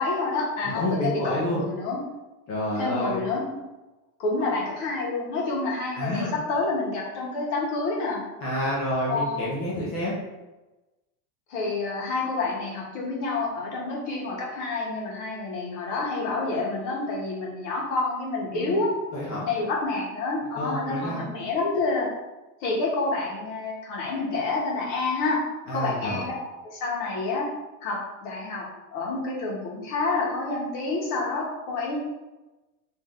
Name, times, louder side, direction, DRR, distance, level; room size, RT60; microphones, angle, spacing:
voice 1, 0.0-2.0 2.7-3.4 4.2-8.3 9.1-9.5 11.5-18.9 19.5-22.1 22.6-25.4 25.7-26.4 26.6-27.5 27.8-28.6 28.9-32.0, left 3 dB, 55° left, -3 dB, 1.2 m, -28 dB
voice 2, 0.7-1.6 2.5-3.2 5.9-6.3 8.4-10.1 18.5-18.8 19.1-19.5 20.5-21.2 25.7-26.2, left 1 dB, 30° left, -6 dB, 0.8 m, -28 dB
3.1 x 2.7 x 3.6 m, 1.1 s
cardioid pair, 170°, 42 cm